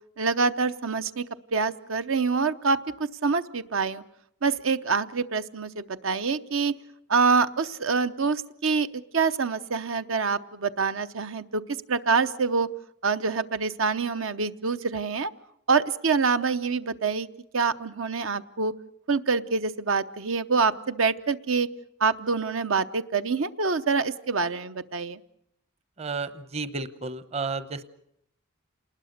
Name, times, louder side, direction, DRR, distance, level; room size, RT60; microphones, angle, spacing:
voice 1, 0.2-1.3 1.5-2.8 3.2-4.0 4.4-6.8 7.1-12.7 13.0-15.3 15.7-17.3 17.5-18.7 19.1-21.7 22.0-25.2, right 4 dB, 75° right, 11 dB, 0.8 m, -26 dB
voice 2, 26.0-27.8, right 4 dB, 30° right, 12 dB, 0.9 m, -32 dB
28.5 x 20.0 x 6.6 m, 0.73 s
head